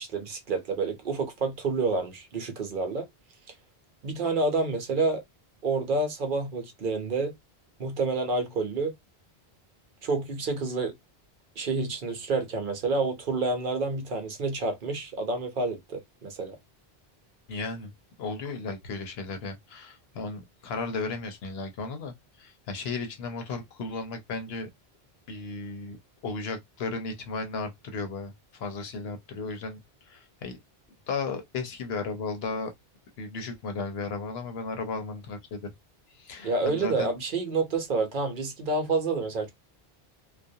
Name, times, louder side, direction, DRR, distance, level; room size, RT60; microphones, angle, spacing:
voice 1, 0.0-3.1 4.0-5.2 5.6-7.3 7.8-8.9 10.0-11.0 11.6-16.6 36.4-39.5, right 3 dB, 55° right, 0.8 m, -28 dB
voice 2, 17.5-17.9 18.2-24.7 25.3-26.0 26.2-29.8 30.1-30.6 31.1-32.7 33.2-35.7 36.2-37.1, left 4 dB, 75° left, 0.9 m, -35 dB
2.4 x 2.2 x 2.6 m
omnidirectional pair, 1.1 m